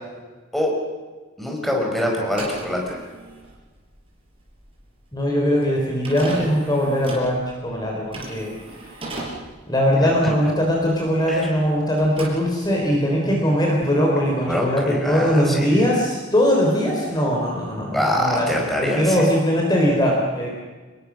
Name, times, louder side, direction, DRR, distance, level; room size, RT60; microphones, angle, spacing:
voice 1, 1.4-3.0 10.0-10.1 11.3-11.4 14.4-15.8 17.9-19.3, left 1 dB, ahead, -1 dB, 5.1 m, -24 dB
sound 1, 2.2-11.7 11.9-13.0, right 2 dB, 25° right, 5.7 m, -37 dB
voice 2, 5.1-8.6 8.8-8.9 9.7-18.5 18.8-20.5, equal, 20° left, -1 dB, 4.0 m, -20 dB
26.0 x 22.0 x 6.4 m, 1.3 s
head